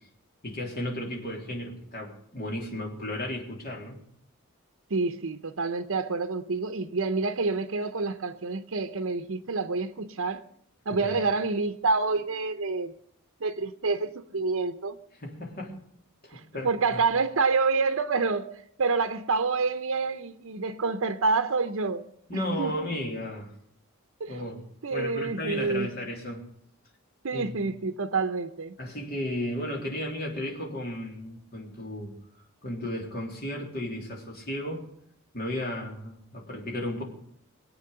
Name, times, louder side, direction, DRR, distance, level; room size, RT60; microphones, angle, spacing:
voice 1, 0.4-4.0 11.0-11.2 15.2-15.8 16.2-17.0 22.3-23.5 24.3-24.6 24.9-26.4 27.3-27.6 28.8-32.2 32.6-34.9 35.3-37.0, left 1 dB, 45° left, 3.4 m, -34 dB
voice 2, 4.9-10.4 10.9-12.9 13.4-15.0 16.3-18.5 18.8-22.0 22.3-22.7 24.2-24.4 24.8-25.9 27.2-28.8, right 4 dB, 70° right, 0.7 m, -28 dB
22.5 x 8.5 x 6.8 m
head